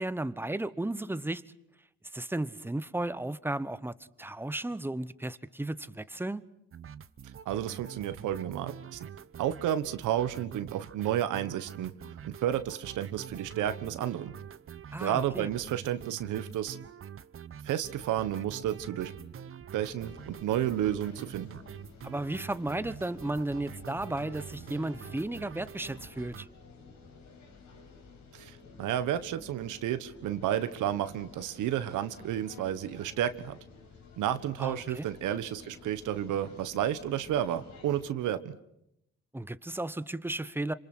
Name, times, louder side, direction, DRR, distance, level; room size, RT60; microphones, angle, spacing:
voice 1, 0.0-1.4 2.1-6.4 14.9-15.5 22.0-26.5 34.6-35.1 39.3-40.7, right 1 dB, 5° right, 1.0 m, -34 dB
sound 1, 6.7-26.5, right 8 dB, 45° right, 0.9 m, -46 dB
voice 2, 7.4-9.1 9.4-11.9 12.2-14.3 15.0-16.8 17.6-19.1 19.7-21.5 28.3-33.6 34.2-38.6, right 11 dB, 85° right, 1.4 m, -31 dB
sound 2, 19.8-38.1, left 4 dB, 75° left, 5.9 m, -53 dB
27.0 x 26.5 x 6.2 m
cardioid pair, 90°, 30 cm